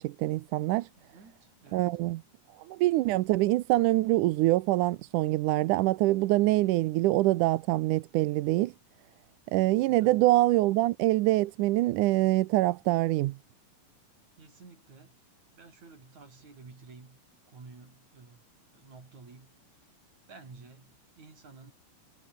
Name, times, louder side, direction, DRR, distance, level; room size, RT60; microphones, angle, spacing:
voice 1, 0.0-0.9 1.7-2.2 2.7-8.7 9.5-13.4, right 17 dB, 75° right, 2.0 m, -25 dB
voice 2, 0.9-2.0 9.8-10.3 14.4-15.2 15.5-17.2 17.5-18.4 18.7-19.9 20.3-21.7, right 4 dB, 50° right, 7.3 m, -52 dB
omnidirectional pair, 4.1 m